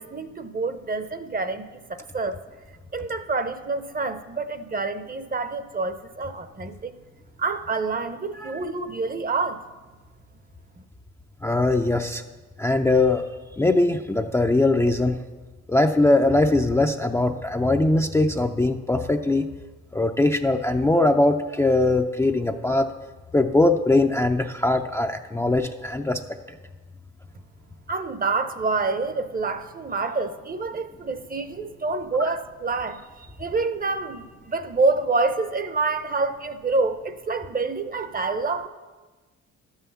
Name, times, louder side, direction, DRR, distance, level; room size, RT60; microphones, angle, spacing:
voice 1, 0.0-2.4 2.9-6.9 7.4-9.6 27.9-38.7, right 3 dB, 30° right, 0.7 m, -27 dB
voice 2, 11.4-12.2 12.6-13.2 13.6-15.2 15.7-19.5 19.9-22.9 23.3-26.2 32.3-32.4, left 2 dB, 10° left, 0.4 m, -21 dB
12.0 x 5.7 x 7.1 m
cardioid pair, 90°, 30 cm